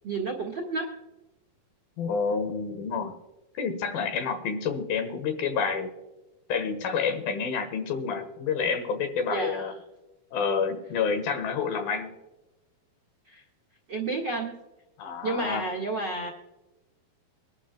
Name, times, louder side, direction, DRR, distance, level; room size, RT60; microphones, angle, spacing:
voice 1, 0.0-0.8 9.3-9.7 13.3-13.4 13.9-14.5 15.2-16.3, right 3 dB, 40° right, 1 dB, 1.7 m, -30 dB
voice 2, 2.0-3.2 3.6-5.9 6.5-9.7 10.3-12.2 15.0-15.6, left 5 dB, 75° left, 7 dB, 3.1 m, -29 dB
24.0 x 12.0 x 2.3 m, 1.0 s
omnidirectional pair, 4.3 m